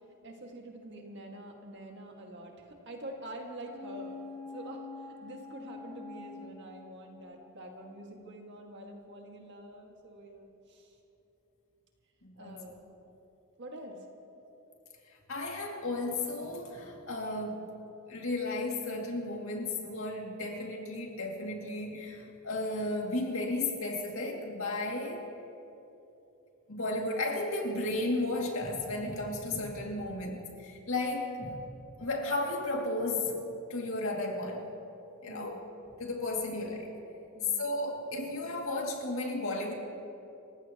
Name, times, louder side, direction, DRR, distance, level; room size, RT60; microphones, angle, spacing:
voice 1, 0.2-4.2 4.5-4.9 5.2-11.0 12.4-12.8 13.6-14.1 35.2-35.6 36.3-36.5 37.3-37.6, right 1 dB, 50° right, 1 dB, 2.0 m, -46 dB
sound 1, 3.7-7.5 7.8-7.9, left 3 dB, 10° left, 1.9 m, -46 dB
voice 2, 12.2-12.6 15.1-17.7 18.1-25.3 26.7-31.7 32.0-33.4 33.7-34.7 35.2-35.6 36.0-36.9 37.6-39.7, left 2 dB, 60° left, 0 dB, 2.5 m, -34 dB
29.0 x 15.5 x 3.0 m, 3.0 s
head